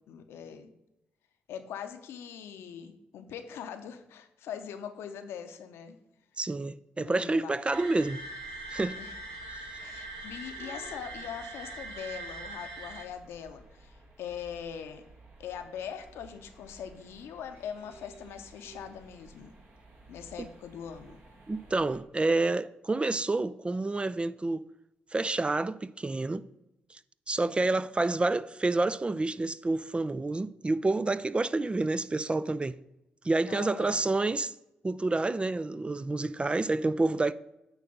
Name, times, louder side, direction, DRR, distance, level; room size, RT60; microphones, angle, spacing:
voice 1, 0.1-0.7 1.5-6.0 7.0-7.5 9.0-9.1 9.8-15.0 15.4-19.5 20.1-21.2 27.4-27.8 33.5-34.0, left 8 dB, 70° left, 0.8 m, -42 dB
voice 2, 6.4-8.2 8.7-9.0 9.5-9.8 21.5-24.6 25.1-26.5 26.9-27.0 27.3-32.8 33.2-34.5 34.8-37.3, right 2 dB, 25° right, 0.4 m, -28 dB
sound 1, 7.7-13.0, right 2 dB, 80° right, 0.8 m, -42 dB
sound 2, 8.3-22.0, right 3 dB, 55° right, 1.9 m, -55 dB
8.8 x 3.3 x 6.5 m
hypercardioid pair, 40°, 4 cm